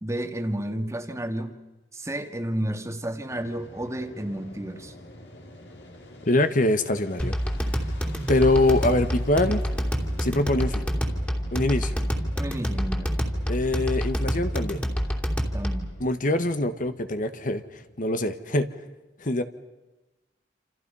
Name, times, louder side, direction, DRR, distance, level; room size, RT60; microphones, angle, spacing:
voice 1, 0.0-1.6 1.9-4.9 12.3-13.3 15.5-15.9, right 1 dB, 15° right, 7 dB, 1.9 m, -31 dB
Fixed-wing aircraft airplane, 3.3-18.5, equal, 85° left, 5.6 m, -46 dB
voice 2, 6.3-7.4 8.3-9.6 10.2-10.9 11.5-12.0 13.5-14.8 16.0-18.7 19.2-19.4, left 2 dB, 50° left, 9 dB, 1.5 m, -24 dB
sound 1, 7.2-15.9, equal, 10° left, 2.9 m, -27 dB
28.0 x 28.0 x 5.6 m, 1.1 s
head